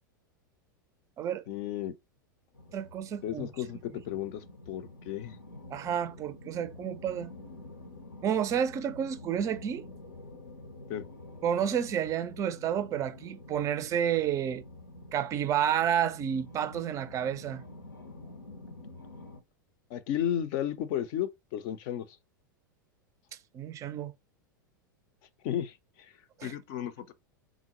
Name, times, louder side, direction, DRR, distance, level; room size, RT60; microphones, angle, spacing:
voice 1, 1.5-1.9 3.2-5.4 10.9-11.0 19.9-22.1 25.4-25.7 26.4-27.1, left 10 dB, 50° left, 0.5 m, -33 dB
sound 1, 2.5-19.4, left 2 dB, 85° left, 0.8 m, -48 dB
voice 2, 2.7-3.5 5.7-7.3 8.2-9.9 11.4-14.6 15.1-17.6 23.5-24.1 26.4-26.5, right 9 dB, 30° right, 0.4 m, -30 dB
3.7 x 2.1 x 2.9 m
figure-of-eight pair, 90°, 11 cm